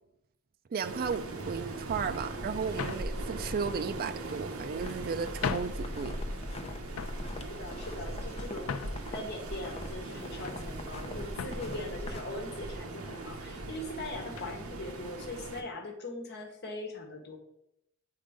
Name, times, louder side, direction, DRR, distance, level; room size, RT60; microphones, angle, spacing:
voice 1, 0.7-6.2, right 6 dB, 45° right, 0.4 m, -34 dB
Waves surf, 0.8-15.6, right 2 dB, 80° right, 0.9 m, -40 dB
sound 1, 1.1-1.4 2.1-2.3 2.8-3.1 4.1-4.7 5.1-5.2 5.4-5.9 6.2-6.6 6.9-7.3 7.9-9.1 9.7-10.6 10.9-11.1 11.3-11.7 12.5-12.6 12.9-13.1 14.4-14.6, left 7 dB, 75° left, 0.4 m, -39 dB
sound 2, 4.8-12.2, left 1 dB, 30° left, 0.6 m, -43 dB
voice 2, 7.5-8.7 9.1-17.4, left 2 dB, 50° left, 1.5 m, -41 dB
8.6 x 3.8 x 5.1 m
head